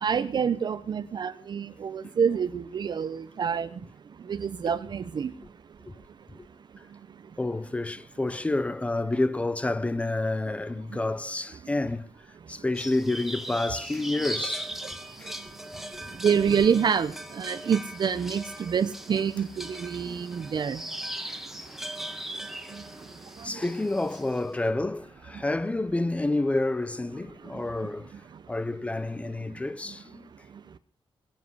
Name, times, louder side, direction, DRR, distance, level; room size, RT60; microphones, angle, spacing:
voice 1, 0.0-3.7 4.3-5.3 16.2-20.8, right 7 dB, 50° right, 0.9 m, -27 dB
voice 2, 7.4-12.1 12.5-14.7 15.2-15.3 15.9-16.2 20.0-20.3 21.1-21.3 23.4-28.1 28.5-30.3, left 2 dB, 15° left, 0.8 m, -29 dB
sound 1, 12.8-24.5, right 1 dB, 5° right, 1.6 m, -39 dB
22.5 x 7.6 x 8.1 m
wide cardioid pair, 160°, 10 cm